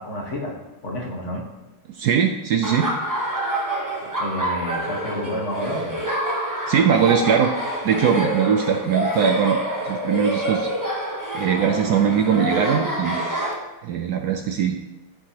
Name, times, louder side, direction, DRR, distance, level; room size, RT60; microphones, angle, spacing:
voice 1, 0.0-1.4 4.2-6.0, equal, 40° left, -1 dB, 1.5 m, -30 dB
voice 2, 1.9-2.9 6.7-7.5 7.8-9.6 9.9-10.7 11.3-13.2 13.8-14.8, right 7 dB, 80° right, 4 dB, 0.8 m, -20 dB
Laughter, 2.6-13.5, right 1 dB, 25° right, 0.4 m, -27 dB
14.0 x 4.8 x 2.9 m, 1.0 s
omnidirectional pair, 2.3 m